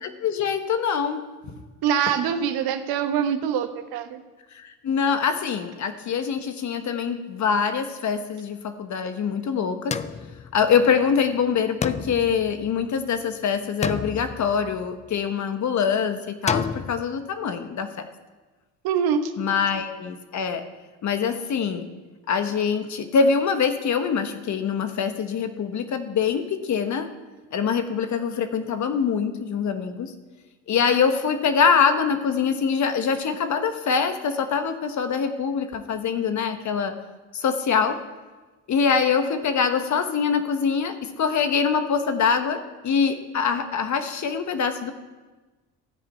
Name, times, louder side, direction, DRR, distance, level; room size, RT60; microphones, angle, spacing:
voice 1, 0.0-1.2 1.5-1.6 4.6-10.0 10.5-18.0 19.4-20.6 21.0-21.8 22.3-27.1 27.5-30.1 30.7-36.9 37.3-38.0 38.7-44.9, left 6 dB, 50° left, 8 dB, 1.2 m, -24 dB
voice 2, 1.8-4.2 18.8-19.3, right 8 dB, 70° right, 8 dB, 1.2 m, -24 dB
sound 1, 9.9-11.1 11.8-13.2 13.8-15.2 16.5-17.0, left 6 dB, 20° left, 0.4 m, -30 dB
13.5 x 5.0 x 8.5 m, 1.3 s
supercardioid pair, 80°, 38 cm